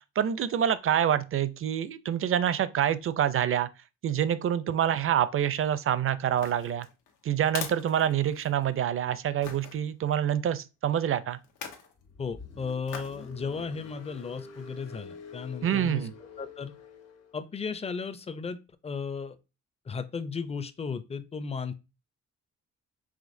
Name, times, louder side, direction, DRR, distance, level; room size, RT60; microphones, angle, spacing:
voice 1, 0.2-3.7 4.0-6.9 7.2-11.4 15.6-16.1, right 10 dB, 45° right, 0.5 m, -26 dB
sound 1, 6.3-8.7 9.4-9.8 11.4-11.9 12.9-13.2 13.7-13.8, left 6 dB, 85° left, 1.1 m, -41 dB
Car, 12.0-17.4, left 4 dB, 55° left, 1.2 m, -47 dB
voice 2, 12.2-16.1 16.4-16.7 17.3-19.4 19.9-21.7, left 5 dB, 20° left, 0.5 m, -35 dB
5.0 x 3.4 x 2.6 m
cardioid pair, 90°, 30 cm